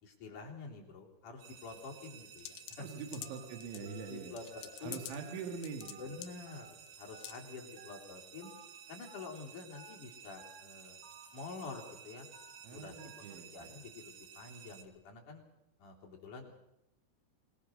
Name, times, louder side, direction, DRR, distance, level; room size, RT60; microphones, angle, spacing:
voice 1, 0.0-2.9 3.8-4.4 4.8-5.0 5.9-8.5 8.9-11.0 11.3-12.3 12.7-15.4 15.8-16.7, left 4 dB, 45° left, -1 dB, 4.8 m, -48 dB
sound 1, 1.4-14.8, right 7 dB, 65° right, 3.6 m, -54 dB
sound 2, 2.4-3.8 4.4-5.2 5.4-5.9 6.2-6.3 6.9-7.0 7.2-7.4, left 13 dB, 80° left, 1.9 m, -46 dB
voice 2, 2.8-4.4 4.8-6.0 12.6-13.8, right 5 dB, 85° right, 3 dB, 4.3 m, -44 dB
Telephone, 3.2-3.4 3.9-4.1 4.5-4.7 5.2-5.4 5.8-6.0 6.5-6.7 7.1-7.3 7.8-8.0 8.4-8.6 9.1-9.3 9.7-10.0 10.4-10.6 11.0-11.3 11.7-11.9 12.3-12.6 13.0-13.2, right 3 dB, 35° right, 4.2 m, -56 dB
26.0 x 19.0 x 6.5 m, 0.84 s
omnidirectional pair, 5.2 m